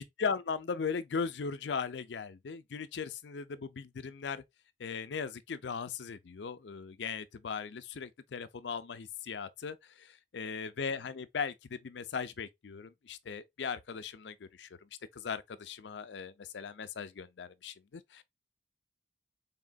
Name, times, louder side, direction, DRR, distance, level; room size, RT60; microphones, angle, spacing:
voice 1, 0.2-4.4 4.8-14.7 15.1-18.2, left 5 dB, 75° left, 0.5 m, -38 dB
4.1 x 3.7 x 2.3 m
head